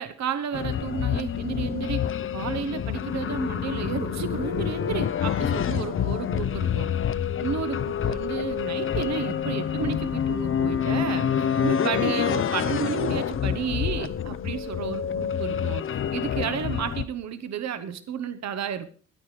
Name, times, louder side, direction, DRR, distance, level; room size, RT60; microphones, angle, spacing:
voice 1, 0.0-6.9 7.4-18.9, right 8 dB, 65° right, 11 dB, 1.3 m, -32 dB
sound 1, 0.5-17.0, left 9 dB, 45° left, 0.7 m, -27 dB
14.5 x 9.5 x 5.0 m, 0.41 s
cardioid pair, 90°, 30 cm